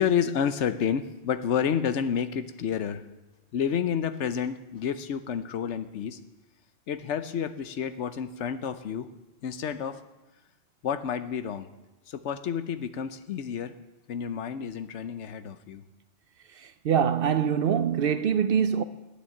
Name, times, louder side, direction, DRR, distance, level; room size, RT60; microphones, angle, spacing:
voice 1, 0.0-3.0 3.5-6.2 6.9-9.1 9.4-10.0 10.8-11.7 12.1-13.8 14.1-15.8, left 8 dB, 80° left, 1.0 m, -29 dB
voice 2, 16.6-18.8, right 8 dB, 60° right, 0.7 m, -24 dB
9.9 x 9.2 x 8.6 m
omnidirectional pair, 1.2 m